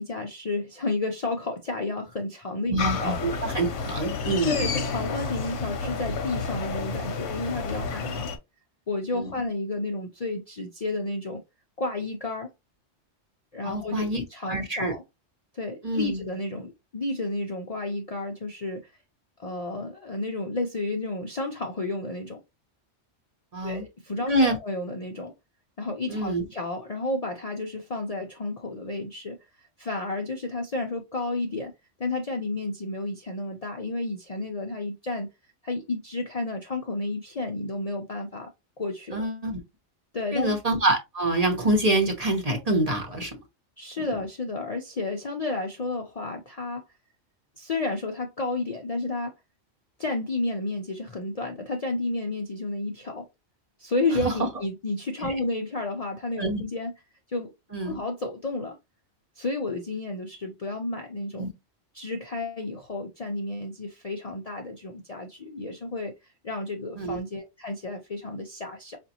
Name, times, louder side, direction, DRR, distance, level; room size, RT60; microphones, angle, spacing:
voice 1, 0.0-3.2 4.4-8.3 8.9-11.4 11.8-12.5 13.5-15.0 15.5-18.9 19.4-22.4 23.6-25.3 25.8-31.7 32.0-35.3 35.6-38.5 38.8-39.3 40.1-40.5 43.8-46.8 47.6-49.3 50.0-53.3 53.8-56.9 57.3-57.5 57.8-58.8 59.4-61.5 61.9-66.1 66.4-69.0, left 2 dB, 45° left, 0.5 m, -31 dB
voice 2, 2.7-4.6 9.1-9.3 13.6-14.2 14.5-14.9 15.8-16.2 23.5-23.8 24.3-24.6 26.1-26.4 39.1-39.6 40.3-43.4 54.2-54.3 55.2-55.3 56.4-56.6 57.7-58.0 61.4-61.5 66.9-67.2, right 1 dB, 35° right, 0.9 m, -26 dB
sound 1, 2.8-8.4, left 4 dB, 70° left, 1.0 m, -30 dB
5.1 x 2.5 x 2.8 m
omnidirectional pair, 1.2 m